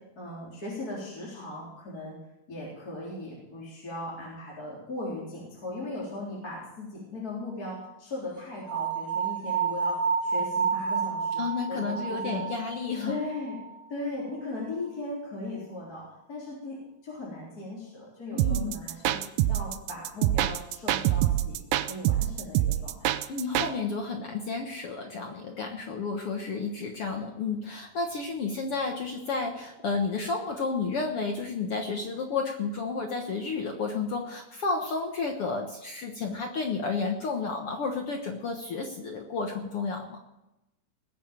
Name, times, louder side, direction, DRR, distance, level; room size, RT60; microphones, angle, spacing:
voice 1, 0.0-2.2 2.5-12.4 13.0-13.6 13.9-16.8 17.0-19.2 19.5-23.1, left 2 dB, 25° left, -6 dB, 4.0 m, -38 dB
sound 1, 8.7-13.8, right 6 dB, 35° right, 1.8 m, -30 dB
voice 2, 11.4-13.1 18.3-18.8 23.3-40.2, left 4 dB, 65° left, 3 dB, 1.4 m, -31 dB
sound 2, 18.4-23.7, right 13 dB, 80° right, 2.4 m, -26 dB
20.0 x 7.4 x 7.5 m, 0.92 s
omnidirectional pair, 4.3 m